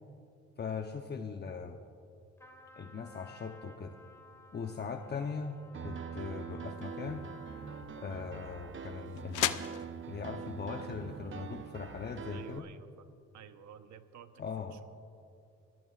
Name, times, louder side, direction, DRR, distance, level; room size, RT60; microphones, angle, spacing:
voice 1, 0.6-1.8 2.8-3.9 4.5-7.2 8.0-9.6 10.1-12.7 14.4-14.8, left 5 dB, 35° left, 4 dB, 0.8 m, -40 dB
Trumpet, 2.4-9.1, left 2 dB, 10° left, 2.0 m, -56 dB
Piano, 5.7-12.6, right 7 dB, 40° right, 0.7 m, -44 dB
sound 1, 6.7-12.6, left 13 dB, 90° left, 0.7 m, -41 dB
voice 2, 12.3-13.1 13.3-14.8, right 8 dB, 70° right, 9 dB, 1.0 m, -53 dB
25.0 x 15.5 x 2.5 m, 2.7 s
cardioid pair, 90°, 30 cm